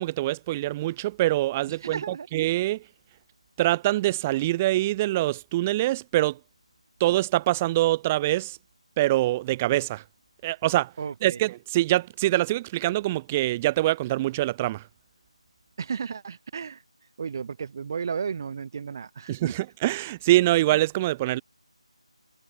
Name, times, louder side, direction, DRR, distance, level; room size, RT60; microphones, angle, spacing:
voice 1, 0.0-2.8 3.6-6.4 7.0-8.6 9.0-10.0 10.4-10.9 11.2-14.9 19.3-21.4, right 16 dB, 15° right, 1.9 m, -24 dB
voice 2, 1.8-2.3 11.0-11.4 15.8-16.8 17.2-19.5, right 6 dB, 35° right, 3.4 m, -33 dB
figure-of-eight pair, 165°, 4 cm